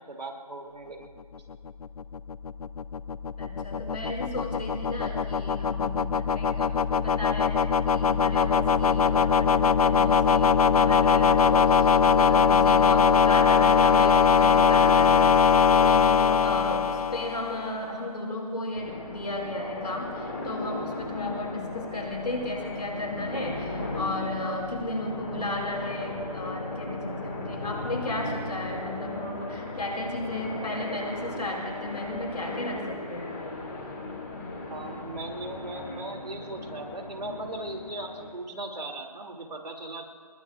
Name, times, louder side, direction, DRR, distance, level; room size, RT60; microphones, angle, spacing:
voice 1, 0.1-1.1 12.1-12.5 24.2-24.4 34.7-40.1, right 2 dB, 85° right, 3 dB, 2.5 m, -38 dB
sound 1, 1.5-17.7, left 6 dB, 65° left, 0.5 m, -21 dB
voice 2, 3.4-33.4, left 1 dB, 85° left, -1 dB, 5.3 m, -34 dB
sound 2, 18.7-38.3, left 2 dB, 30° left, 2.3 m, -36 dB
27.5 x 21.0 x 2.4 m, 2.3 s
figure-of-eight pair, 170°, 20 cm